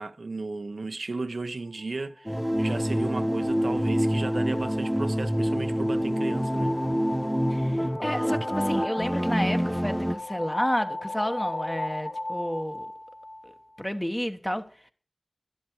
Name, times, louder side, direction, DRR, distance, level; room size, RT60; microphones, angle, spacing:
voice 1, 0.0-6.8, right 3 dB, 85° right, 0.6 m, -34 dB
sound 1, 2.2-13.9, left 2 dB, 60° left, 3.0 m, -37 dB
sound 2, 2.3-10.2, equal, 5° right, 0.8 m, -26 dB
voice 2, 7.5-12.9 13.4-14.9, equal, 10° left, 1.2 m, -31 dB
11.5 x 11.5 x 4.6 m
wide cardioid pair, 50°, 0 cm